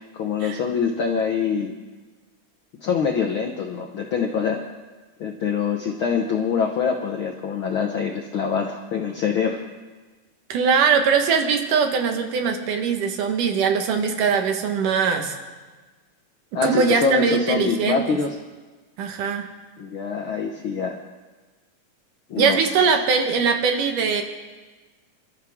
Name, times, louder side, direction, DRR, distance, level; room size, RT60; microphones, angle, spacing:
voice 1, 0.0-1.7 2.8-4.6 5.2-9.6 16.5-18.3 19.8-21.0 22.3-22.6, left 6 dB, 70° left, 2 dB, 1.2 m, -24 dB
voice 2, 10.5-15.4 16.6-18.2 19.0-19.5 22.4-24.2, right 5 dB, 75° right, 4 dB, 2.9 m, -21 dB
28.5 x 13.0 x 3.6 m, 1.3 s
omnidirectional pair, 3.7 m